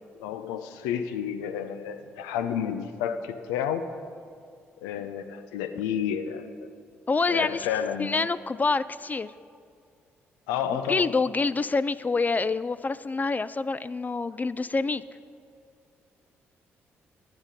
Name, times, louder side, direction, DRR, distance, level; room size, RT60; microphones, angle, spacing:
voice 1, 0.2-3.9 4.8-6.7 7.3-8.3 10.5-11.1, left 8 dB, 90° left, 9 dB, 0.5 m, -31 dB
voice 2, 7.1-7.7 8.0-9.3 10.9-15.0, left 3 dB, 30° left, 16 dB, 0.3 m, -26 dB
11.5 x 9.7 x 5.1 m, 2.3 s
hypercardioid pair, 50°, 6 cm